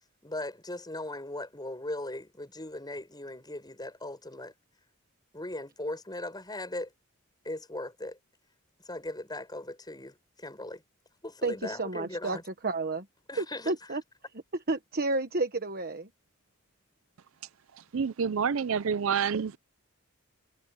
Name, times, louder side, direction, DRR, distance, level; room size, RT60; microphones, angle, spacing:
voice 1, 0.2-4.5 5.3-6.9 7.4-8.2 8.8-10.8 11.2-12.4 13.3-13.7, left 1 dB, 20° left, 6.9 m, -38 dB
voice 2, 11.4-13.0 13.4-14.0 14.7-16.1, right 3 dB, 45° right, 1.3 m, -31 dB
voice 3, 17.9-19.6, right 6 dB, 70° right, 0.5 m, -28 dB
head